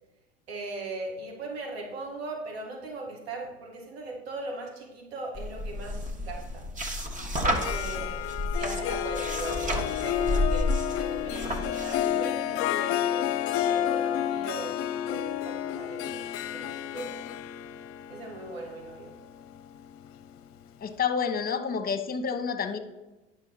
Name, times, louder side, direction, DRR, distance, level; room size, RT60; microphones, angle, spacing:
voice 1, 0.5-6.6 7.7-14.8 15.1-17.1 18.1-19.1, right 2 dB, 80° right, 0 dB, 2.1 m, -39 dB
sound 1, 5.3-12.2, left 1 dB, 25° right, 1.4 m, -31 dB
Harp, 7.4-20.3, left 11 dB, 50° left, 0.6 m, -31 dB
voice 2, 20.8-22.8, left 6 dB, 30° left, 8 dB, 1.1 m, -29 dB
9.6 x 6.2 x 4.1 m, 1.1 s
hypercardioid pair, 70°, 31 cm